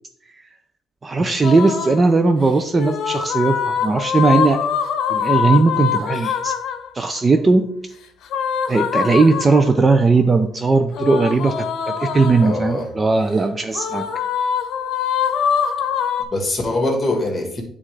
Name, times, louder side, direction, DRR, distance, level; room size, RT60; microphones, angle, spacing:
voice 1, 1.0-4.6 5.1-6.5 6.9-7.7 8.7-14.1, right 3 dB, 25° right, 7 dB, 0.3 m, -17 dB
sound 1, 1.4-2.1 2.7-6.9 8.3-9.8 10.9-12.6 13.7-16.2, left 7 dB, 75° left, 0.7 m, -23 dB
voice 2, 6.1-6.4 11.0-11.1 12.4-12.9 16.3-17.6, left 2 dB, 20° left, 3 dB, 1.4 m, -23 dB
9.6 x 3.6 x 3.2 m, 0.68 s
cardioid pair, 145°, 0 cm